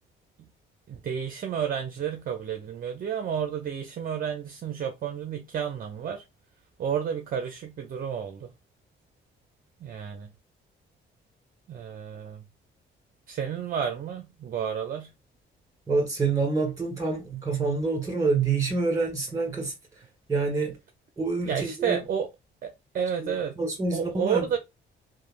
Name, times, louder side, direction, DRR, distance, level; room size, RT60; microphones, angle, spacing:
voice 1, 0.9-6.2 6.8-8.5 9.8-10.3 11.7-12.4 13.3-15.1 21.4-22.3 22.6-23.6 23.9-24.6, right 8 dB, 45° right, 0.5 m, -31 dB
voice 2, 15.9-19.7 20.3-20.8 21.2-22.0 23.2-24.6, right 4 dB, 15° right, 1.8 m, -27 dB
3.2 x 2.1 x 2.4 m
cardioid pair, 90°, 20 cm